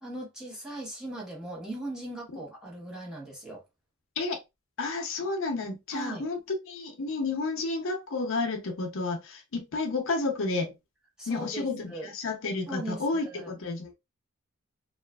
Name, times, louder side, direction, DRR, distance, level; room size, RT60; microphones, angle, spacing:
voice 1, 0.0-3.6 5.9-6.3 11.2-12.1 12.7-13.5, right 1 dB, 5° right, 0.9 m, -39 dB
voice 2, 4.8-10.7 11.3-13.9, left 3 dB, 65° left, 0.6 m, -31 dB
3.0 x 2.3 x 2.2 m
head